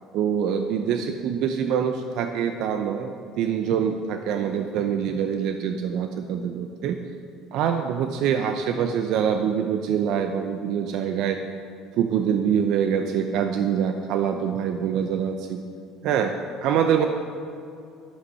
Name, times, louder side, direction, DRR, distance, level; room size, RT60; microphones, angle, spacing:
voice 1, 0.1-7.0 7.5-11.4 12.0-15.6 16.0-17.1, right 8 dB, 65° right, 6 dB, 0.6 m, -25 dB
11.0 x 8.2 x 5.6 m, 2.5 s
cardioid pair, 125°, 0 cm